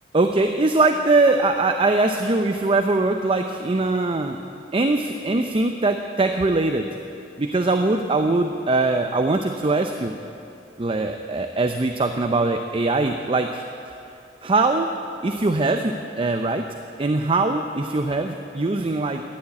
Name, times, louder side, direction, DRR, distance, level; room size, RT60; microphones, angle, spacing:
voice 1, 0.1-4.4 4.7-6.9 7.4-10.1 10.8-13.6 14.4-14.9 15.2-16.7 17.0-19.2, right 2 dB, 30° right, 6 dB, 0.5 m, -21 dB
13.0 x 9.6 x 8.7 m, 2.7 s
head